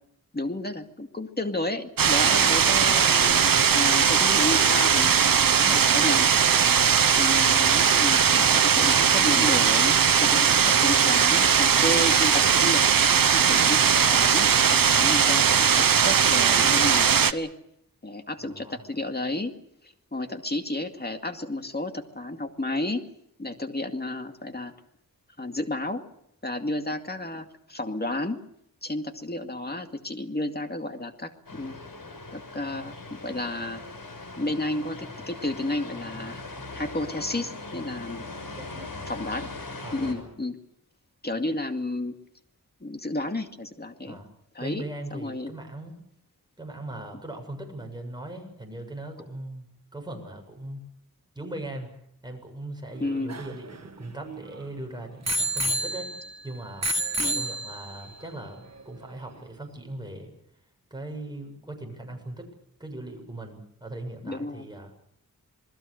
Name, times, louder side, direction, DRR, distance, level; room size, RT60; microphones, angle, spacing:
voice 1, 0.3-6.6 7.1-12.9 13.3-17.5 18.0-19.5 19.8-23.1 23.4-24.7 25.4-26.0 26.4-28.4 28.8-31.8 32.3-33.9 34.3-36.4 36.7-38.3 39.1-39.5 39.9-40.6 41.2-42.2 42.8-44.2 44.6-44.8 45.1-45.5 53.0-53.4 57.2-57.5 64.2-64.7, left 1 dB, 25° left, 5 dB, 2.3 m, -32 dB
sound 1, 2.0-17.3, right 7 dB, 70° right, 1.0 m, -19 dB
voice 2, 18.4-18.8 38.5-38.9 39.8-40.3 44.1-44.3 44.6-46.0 46.6-50.8 51.4-52.0 52.2-56.1 56.4-56.9 57.3-60.3 60.9-62.5 62.8-64.9, right 1 dB, 10° right, 3 dB, 7.3 m, -39 dB
sound 2, 31.5-40.1, left 3 dB, 75° left, 6.3 m, -40 dB
Bicycle bell, 53.0-54.6 55.3-56.4 56.8-58.1 58.8-58.9, right 1 dB, 45° right, 1.6 m, -29 dB
28.0 x 20.5 x 6.7 m, 0.73 s
wide cardioid pair, 85°, 35 cm